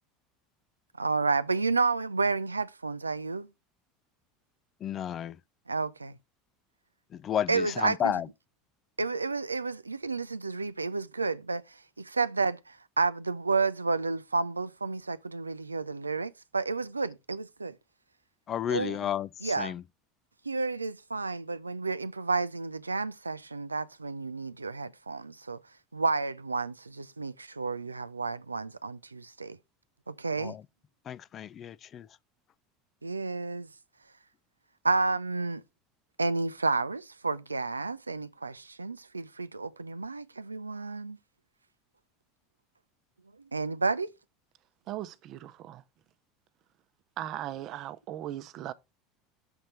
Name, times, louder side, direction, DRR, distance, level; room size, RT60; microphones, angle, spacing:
voice 1, 1.0-3.5 5.7-6.1 7.5-8.2 9.0-11.6 12.0-17.7 18.7-19.0 19.4-19.7 20.5-25.6 25.9-29.6 30.1-30.6 33.0-33.7 34.8-35.6 36.2-41.2 43.5-44.1, right 3 dB, 85° right, 0.4 m, -31 dB
voice 2, 4.8-5.4 7.1-8.3 18.5-19.3 19.6-19.8 30.4-30.6 31.1-32.1, left 9 dB, 35° left, 0.3 m, -32 dB
voice 3, 44.9-45.8 47.2-48.7, right 12 dB, 45° right, 0.7 m, -38 dB
6.8 x 4.3 x 5.2 m
figure-of-eight pair, 75°, 0 cm